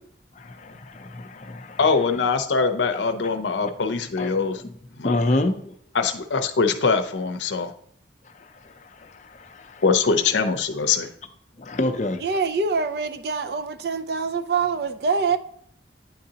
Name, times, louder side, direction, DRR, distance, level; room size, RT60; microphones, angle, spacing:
voice 1, 0.4-1.8 4.2-4.3 4.6-4.7 5.0-5.7 8.4-9.8 11.6-12.2, left 2 dB, 40° left, 0.5 m, -28 dB
voice 2, 1.8-4.6 4.9-5.2 5.9-7.7 9.8-11.1, left 4 dB, 85° left, 0.6 m, -22 dB
voice 3, 12.2-15.4, right 4 dB, 60° right, 0.4 m, -25 dB
9.2 x 3.8 x 2.8 m
head